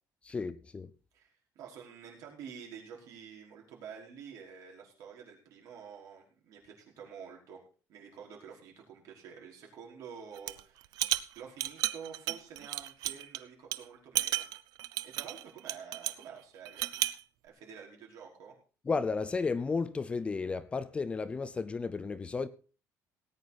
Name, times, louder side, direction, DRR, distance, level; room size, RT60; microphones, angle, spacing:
voice 1, 0.2-0.9 18.9-22.5, left 4 dB, 20° left, 0.5 m, -33 dB
voice 2, 1.5-7.6 7.9-11.0 11.3-14.4 15.0-16.9 17.4-18.5, right 7 dB, 65° right, 4.8 m, -49 dB
sound 1, 10.4-10.6 10.9-13.4 13.7-13.8 14.2-16.2 16.7-17.2, right 16 dB, 85° right, 0.7 m, -33 dB
18.0 x 9.2 x 4.2 m
cardioid pair, 165°, 6 cm